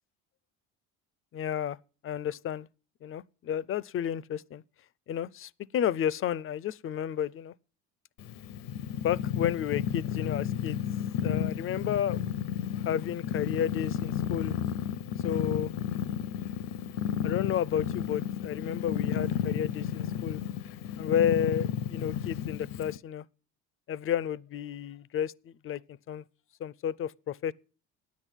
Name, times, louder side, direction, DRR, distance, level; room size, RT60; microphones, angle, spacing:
voice 1, 1.3-1.8 2.0-2.7 3.0-4.6 5.1-7.5 9.0-10.8 11.2-12.2 12.9-14.5 15.2-15.7 17.2-20.4 21.0-23.2 23.9-25.8 26.1-26.2 26.6-27.5, left 9 dB, 40° left, 0.5 m, -31 dB
Purr, 8.2-23.0, left 9 dB, 75° left, 0.8 m, -32 dB
9.8 x 8.3 x 8.9 m
supercardioid pair, 95°, 33 cm